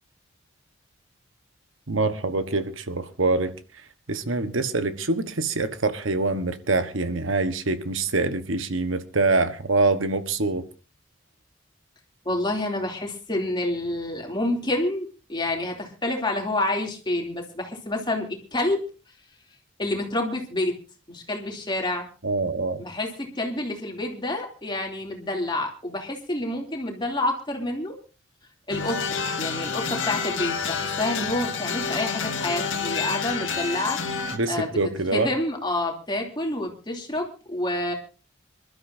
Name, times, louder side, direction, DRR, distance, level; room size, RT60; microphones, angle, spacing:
voice 1, 1.9-3.5 4.1-10.6 22.2-22.8 34.3-35.3, right 3 dB, 90° right, 1.3 m, -25 dB
voice 2, 12.2-18.8 19.8-20.8 21.1-22.1 22.8-27.9 28.7-34.0 34.5-37.9, left 1 dB, 25° left, 2.9 m, -28 dB
sound 1, 28.7-34.4, left 5 dB, 70° left, 2.0 m, -29 dB
26.0 x 12.5 x 2.7 m
head